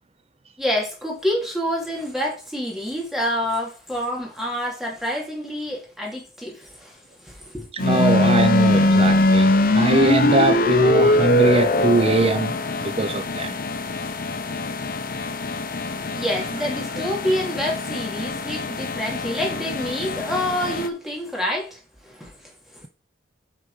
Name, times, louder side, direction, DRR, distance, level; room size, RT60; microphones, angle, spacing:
voice 1, 0.6-7.7 16.1-22.8, equal, ahead, 3.0 m, -27 dB
voice 2, 7.7-13.6, right 2 dB, 30° right, 0.6 m, -22 dB
sound 1, 7.8-20.9, left 2 dB, 45° left, 0.8 m, -22 dB
8.7 x 4.7 x 5.0 m
head